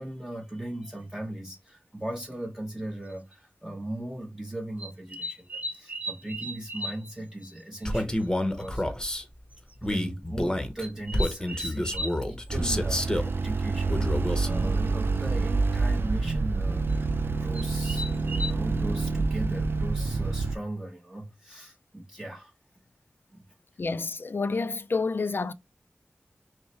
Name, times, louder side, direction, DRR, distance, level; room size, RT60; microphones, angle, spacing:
voice 1, 0.0-9.0 9.8-22.5 23.3-23.5, right 1 dB, 10° right, 1.0 m, -38 dB
sound 1, 0.8-0.9 2.3-2.4 3.1-3.3 4.8-7.1 7.4-7.5 7.8-7.9 8.2-8.3 8.6-8.7 9.5-9.7 10.8-12.2 14.3-14.4 14.6-15.0 16.9-17.0 17.5-18.5, equal, 35° right, 0.8 m, -36 dB
Male speech man speaking, 7.8-9.2 9.8-13.3 13.9-14.6, left 1 dB, 15° left, 0.9 m, -29 dB
sound 2, 12.5-20.6, right 3 dB, 65° right, 0.4 m, -27 dB
voice 2, 23.8-25.5, left 4 dB, 60° left, 0.4 m, -29 dB
5.4 x 2.1 x 3.2 m
cardioid pair, 45°, 4 cm